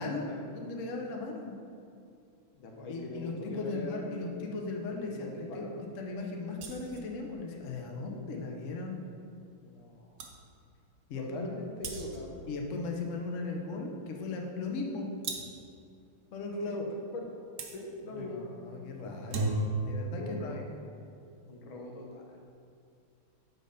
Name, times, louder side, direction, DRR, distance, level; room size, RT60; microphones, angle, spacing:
voice 1, 0.0-0.5 2.6-4.3 5.1-5.8 9.6-10.1 11.2-12.4 16.7-16.9 17.1-18.5 20.2-20.7 21.5-22.4, left 1 dB, 85° left, 0 dB, 1.8 m, -41 dB
voice 2, 0.5-1.6 2.9-5.7 6.0-9.0 11.1-11.5 12.5-15.1 16.3-16.8 18.0-19.6 19.8-20.6, left 3 dB, 55° left, 1 dB, 0.9 m, -37 dB
sound 1, 6.6-7.1 9.8-9.9 10.2-10.4 11.8-12.4 15.2-15.7 17.6-17.8 19.1-19.9, right 3 dB, 65° right, 0.9 m, -35 dB
6.4 x 4.5 x 5.0 m, 2.4 s
omnidirectional pair, 2.2 m